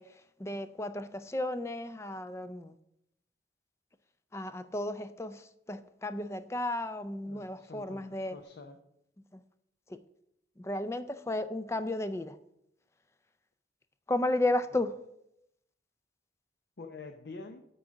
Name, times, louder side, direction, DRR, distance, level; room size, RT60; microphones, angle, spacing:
voice 1, 0.0-2.8 4.3-8.4 9.3-9.4 9.9-10.0 10.6-12.4 14.1-15.0, left 1 dB, 15° left, 0.4 m, -34 dB
voice 2, 7.3-8.8 16.8-17.7, left 3 dB, 70° left, 0.6 m, -47 dB
9.6 x 3.9 x 6.2 m
head